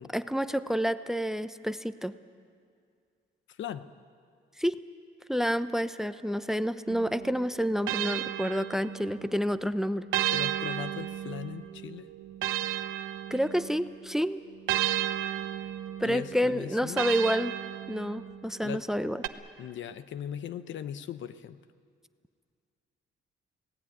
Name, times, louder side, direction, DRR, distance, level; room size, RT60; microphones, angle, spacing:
voice 1, 0.1-2.1 4.6-4.8 5.3-10.1 13.3-14.4 16.0-17.6 17.9-19.2, equal, ahead, 12 dB, 0.8 m, -29 dB
voice 2, 3.5-3.9 10.3-12.1 16.0-17.0 18.6-18.8 19.6-21.6, left 9 dB, 70° left, 12 dB, 1.0 m, -39 dB
sound 1, 6.9-9.3 10.1-13.9 14.7-18.4 19.2-19.3, right 12 dB, 90° right, 0.9 m, -33 dB
25.5 x 18.0 x 9.3 m, 2.2 s
cardioid pair, 90°, 20 cm